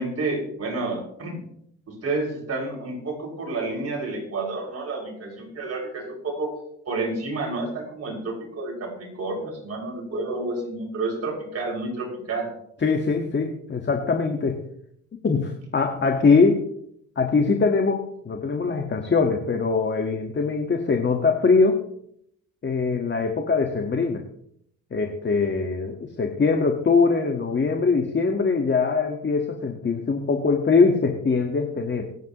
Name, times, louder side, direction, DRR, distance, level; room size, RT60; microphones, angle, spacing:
voice 1, 0.0-1.5 1.9-6.5 6.9-12.5, right 2 dB, 55° right, -2 dB, 6.2 m, -30 dB
voice 2, 12.8-14.6 15.2-16.7 17.1-21.8 22.6-24.2 24.9-32.0, left 4 dB, 35° left, 4 dB, 1.7 m, -22 dB
25.0 x 9.3 x 3.1 m, 0.70 s
cardioid pair, 90°, 30 cm